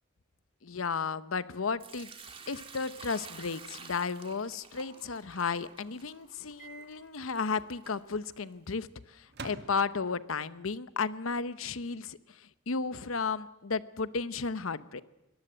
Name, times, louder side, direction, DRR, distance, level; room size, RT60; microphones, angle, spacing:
voice 1, 0.6-2.1 2.5-15.0, left 5 dB, 85° left, 15 dB, 0.9 m, -34 dB
Sink (filling or washing) / Liquid, 1.8-8.7, right 5 dB, 25° right, 2.2 m, -51 dB
Microwave oven, 6.6-6.9 7.2-7.4 9.3-10.3, right 3 dB, 55° right, 1.6 m, -46 dB
23.5 x 18.5 x 8.0 m, 0.93 s
head